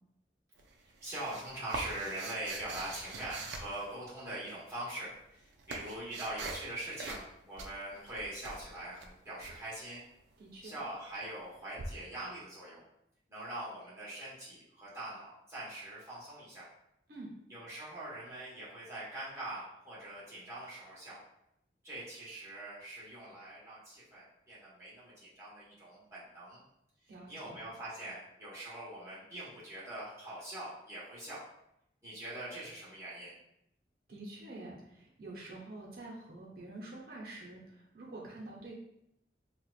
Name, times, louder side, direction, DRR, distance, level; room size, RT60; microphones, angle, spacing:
sound 1, 0.6-4.4 5.1-6.7 7.0-7.3 7.6-9.5 11.8-11.9, right 3 dB, 90° right, 0.4 m, -43 dB
voice 1, 0.8-10.0 10.6-12.8 13.3-16.7 17.5-21.2 21.8-26.6 27.0-31.4 32.0-33.4, right 1 dB, 15° right, -10 dB, 1.3 m, -43 dB
voice 2, 10.4-10.8 17.1-17.3 27.1-27.5 34.1-38.7, right 2 dB, 55° right, -3 dB, 0.9 m, -47 dB
4.3 x 2.4 x 2.4 m, 0.79 s
head